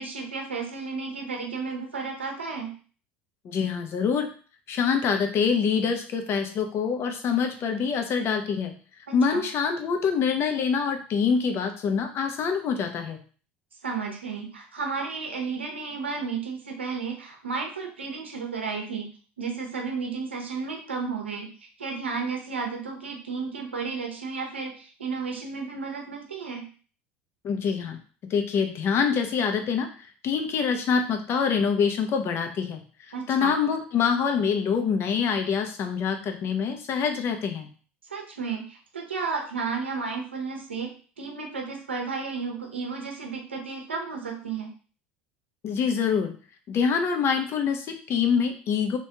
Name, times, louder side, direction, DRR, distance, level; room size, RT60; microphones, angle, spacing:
voice 1, 0.0-2.7 9.1-9.4 13.8-19.1 19.4-21.5 21.8-26.7 33.1-33.6 38.1-40.9 41.2-44.7, right 5 dB, 85° right, 1 dB, 0.7 m, -33 dB
voice 2, 3.4-4.3 4.7-8.7 9.1-13.2 27.4-28.0 28.3-29.9 30.2-32.8 33.3-37.7 45.6-46.3 46.7-49.0, left 6 dB, 45° left, 5 dB, 0.8 m, -25 dB
3.2 x 3.1 x 2.8 m, 0.39 s
hypercardioid pair, 75°, 6 cm